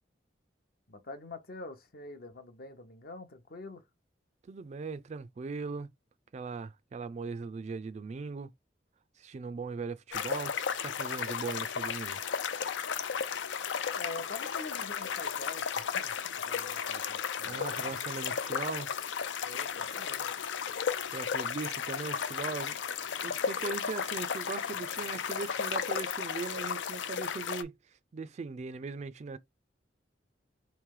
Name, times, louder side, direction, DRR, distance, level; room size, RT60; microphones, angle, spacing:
voice 1, 0.9-3.8 13.9-17.9 19.4-20.3, left 3 dB, 55° left, 0.8 m, -45 dB
voice 2, 4.5-5.9 6.3-8.5 9.2-12.2 17.5-18.9 21.1-22.8 23.2-27.7 28.1-29.4, right 4 dB, 40° right, 0.3 m, -39 dB
sound 1, 10.1-27.6, left 7 dB, 85° left, 0.5 m, -34 dB
3.1 x 3.0 x 3.7 m
head